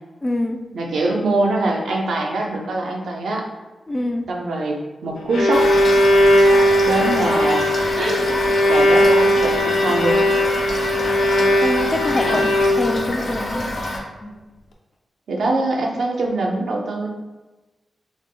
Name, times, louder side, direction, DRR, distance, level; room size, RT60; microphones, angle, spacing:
voice 1, 0.2-0.6 3.9-4.3 11.6-12.5 12.8-13.7 14.2-14.3, left 1 dB, 20° left, 5 dB, 0.4 m, -24 dB
voice 2, 0.7-3.5 4.3-5.7 6.8-8.3 8.7-10.2 12.2-12.4 15.3-17.1, right 2 dB, 85° right, 0 dB, 0.7 m, -23 dB
Bowed string instrument, 5.0-13.1, equal, 85° left, 0.6 m, -18 dB
Toilet flush / Fill (with liquid), 5.5-14.0, left 1 dB, 45° left, 1.1 m, -27 dB
6.4 x 3.4 x 2.2 m, 1.1 s
cardioid pair, 85°, 0 cm